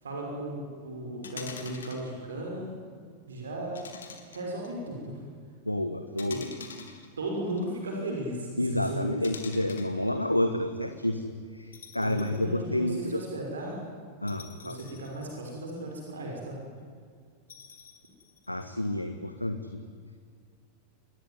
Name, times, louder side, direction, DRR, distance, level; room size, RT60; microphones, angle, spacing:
voice 1, 0.0-2.7 3.3-3.8 4.3-5.2 6.3-6.5 7.2-9.2 12.0-13.8 14.6-16.6, right 1 dB, 70° right, 0 dB, 5.9 m, -36 dB
sound 1, 1.2-2.1 3.7-4.7 6.2-7.6 9.2-10.0 11.7-12.5 12.9-13.0 14.3-15.9 17.5-18.6, left 6 dB, 65° left, 3.7 m, -46 dB
voice 2, 5.6-6.5 8.6-13.2 14.2-14.8 18.5-19.8, left 1 dB, 85° left, 8 dB, 1.4 m, -29 dB
28.0 x 21.5 x 9.8 m, 2.1 s
figure-of-eight pair, 90°, 0 cm